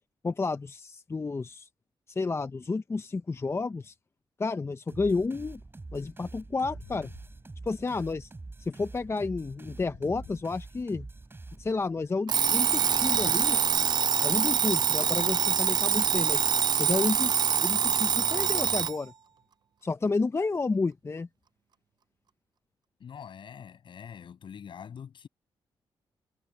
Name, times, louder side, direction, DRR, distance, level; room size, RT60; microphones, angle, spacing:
voice 1, 0.2-1.7 2.1-3.9 4.4-5.6 5.9-7.1 7.7-8.3 8.6-11.1 11.6-13.6 14.2-16.4 16.8-19.1 19.8-21.3, left 3 dB, 30° left, 0.7 m, -31 dB
sound 1, 4.9-12.0, right 3 dB, 25° right, 6.3 m, -45 dB
sound 2, 6.5-8.1 9.5-11.2 12.7-14.3, left 11 dB, 90° left, 7.4 m, -51 dB
Alarm, 12.3-19.0, right 8 dB, 55° right, 0.6 m, -25 dB
voice 2, 23.0-25.3, left 7 dB, 65° left, 7.7 m, -44 dB
cardioid pair, 80°, 9 cm